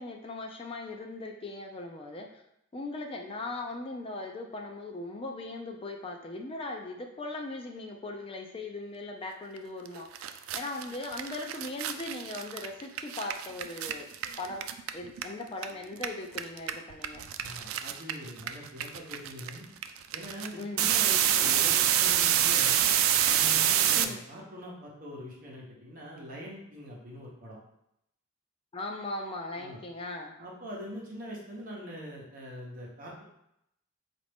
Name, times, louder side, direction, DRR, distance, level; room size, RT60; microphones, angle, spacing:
voice 1, 0.0-2.3 2.7-14.1 14.4-14.6 14.9-17.2 20.6-20.9 23.9-24.2 28.7-30.3, left 2 dB, 25° left, 2 dB, 0.4 m, -39 dB
sound 1, 9.9-10.0 10.1-15.6 15.9-24.0, right 10 dB, 90° right, 0.3 m, -26 dB
voice 2, 17.4-19.7 20.1-22.8 23.2-27.6 29.6-29.8 30.4-33.2, equal, 45° right, -4 dB, 0.9 m, -43 dB
4.2 x 2.5 x 3.4 m, 0.78 s
head